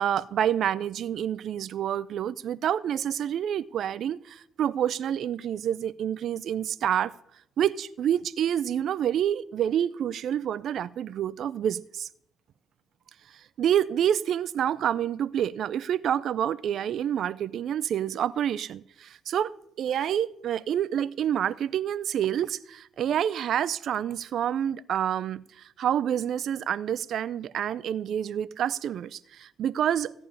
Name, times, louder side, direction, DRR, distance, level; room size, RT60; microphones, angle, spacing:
voice 1, 0.0-7.1 7.6-12.1 13.3-19.5 19.8-30.1, right 10 dB, 70° right, 0.4 m, -28 dB
14.5 x 5.4 x 9.6 m
cardioid pair, 90°, 0 cm